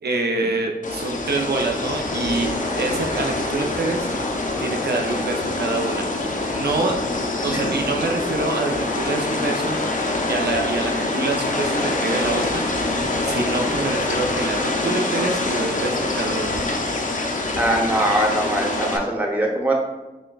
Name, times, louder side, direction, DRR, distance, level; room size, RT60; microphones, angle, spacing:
voice 1, 0.0-4.1 4.6-6.1 6.5-7.1 7.4-9.8 10.3-12.7 13.2-16.6 17.6-17.7, right 3 dB, 80° right, 3 dB, 0.5 m, -26 dB
sound 1, 0.8-19.0, left 2 dB, 50° left, 0.5 m, -25 dB
voice 2, 17.6-19.7, right 1 dB, 10° right, -1 dB, 0.8 m, -22 dB
6.1 x 2.2 x 2.3 m, 1.1 s
wide cardioid pair, 65°, 17 cm